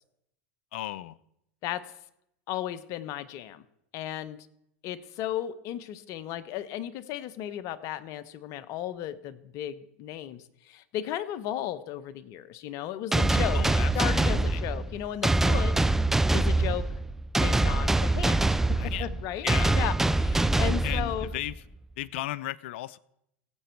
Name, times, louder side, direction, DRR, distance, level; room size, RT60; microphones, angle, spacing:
voice 1, 0.7-1.2 13.5-14.6 18.8-19.8 20.8-21.5 22.0-23.0, left 15 dB, 70° left, 20 dB, 0.5 m, -35 dB
voice 2, 2.5-3.6 3.9-4.4 4.8-13.6 13.9-15.7 16.3-16.8 17.4-19.5 19.7-21.3, left 12 dB, 50° left, 15 dB, 0.9 m, -35 dB
sound 1, 13.1-21.6, right 2 dB, 5° right, 0.3 m, -24 dB
17.0 x 8.0 x 4.5 m, 0.78 s
hypercardioid pair, 105°, 7 cm